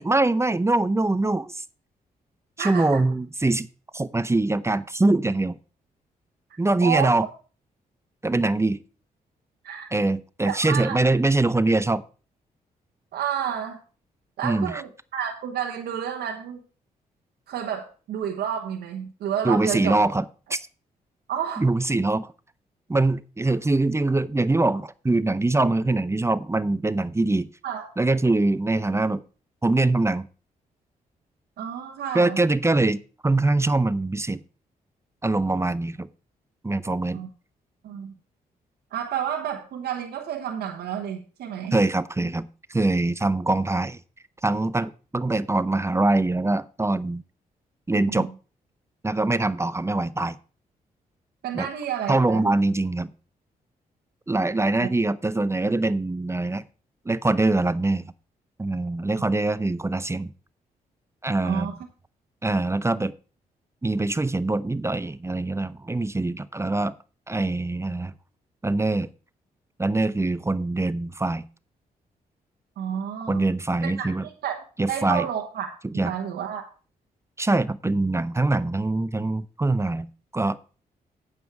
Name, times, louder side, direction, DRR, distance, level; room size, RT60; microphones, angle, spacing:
voice 1, 0.0-1.6 2.6-3.7 3.9-5.6 6.6-7.3 8.2-8.8 9.9-12.0 14.4-14.8 19.4-20.2 20.5-20.7 21.6-22.3 22.9-27.5 28.0-29.2 29.6-30.3 32.1-34.4 35.2-36.1 36.6-37.2 41.7-44.0 44.4-47.2 47.9-48.3 49.0-50.4 51.5-51.7 52.1-53.1 54.3-56.6 57.1-58.1 58.6-60.3 61.2-61.7 62.4-63.1 63.8-66.9 67.3-68.1 68.6-69.1 69.8-71.4 73.3-74.2 74.8-75.3 75.8-76.1 77.4-80.1 80.3-80.6, right 2 dB, 15° right, 16 dB, 0.6 m, -23 dB
voice 2, 2.6-3.0 6.8-7.2 9.6-9.9 10.5-11.0 13.1-13.8 14.4-16.6 17.5-20.0 21.3-21.6 27.6-27.9 31.6-32.4 37.1-37.3 37.8-38.1 38.9-41.8 47.9-48.3 51.4-52.5 54.8-54.9 61.4-61.7 72.8-73.4 74.0-75.7 76.0-76.7, right 9 dB, 85° right, 3 dB, 1.2 m, -30 dB
9.3 x 8.2 x 4.8 m, 0.36 s
cardioid pair, 65°, 16 cm